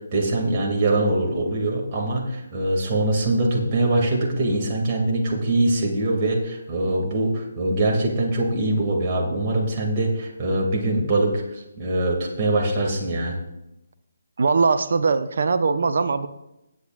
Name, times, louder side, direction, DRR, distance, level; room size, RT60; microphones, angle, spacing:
voice 1, 0.1-13.4, right 2 dB, 30° right, -1 dB, 2.6 m, -23 dB
voice 2, 14.4-16.3, right 4 dB, 55° right, 10 dB, 0.7 m, -21 dB
19.5 x 8.8 x 2.6 m, 0.90 s
figure-of-eight pair, 145°, 0 cm